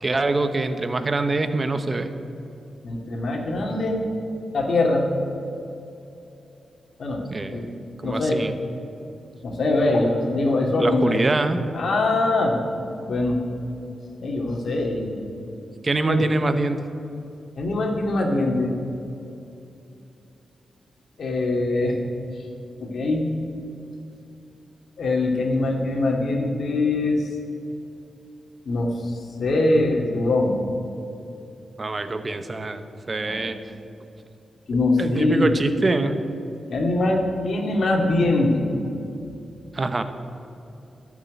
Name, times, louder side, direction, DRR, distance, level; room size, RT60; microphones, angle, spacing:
voice 1, 0.0-2.1 7.3-8.5 10.8-11.6 15.8-16.8 31.8-32.8 33.1-33.6 35.0-36.2 39.7-40.0, right 2 dB, 30° right, 9 dB, 0.9 m, -24 dB
voice 2, 2.8-4.0 4.5-5.1 7.0-7.2 7.5-7.7 8.0-8.4 9.4-11.2 11.7-12.6 13.0-13.4 14.2-15.1 16.1-16.2 17.6-18.7 21.2-22.0 22.8-23.3 25.0-27.2 28.7-29.1 29.4-30.5 33.3-33.4 34.7-35.5 36.7-38.7, left 2 dB, 60° left, 1 dB, 2.3 m, -22 dB
13.5 x 7.4 x 9.4 m, 2.8 s
wide cardioid pair, 115°, 0 cm